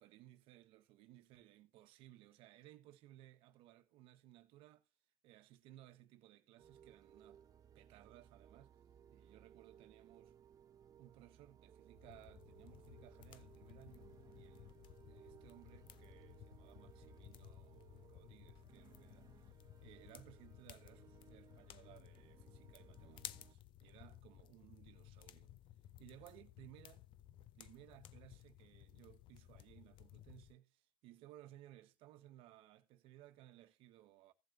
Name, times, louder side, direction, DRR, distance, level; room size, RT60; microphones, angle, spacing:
voice 1, 0.0-4.9 5.2-7.4 7.7-8.7 9.1-10.3 11.0-14.7 15.0-19.5 19.8-25.5 26.0-27.0 27.5-34.3, right 14 dB, 70° right, 1.2 m, -61 dB
sound 1, 6.6-23.6, right 9 dB, 40° right, 0.6 m, -63 dB
sound 2, 11.9-30.5, left 13 dB, 60° left, 0.8 m, -58 dB
16.0 x 7.5 x 2.7 m
supercardioid pair, 95°, 10 cm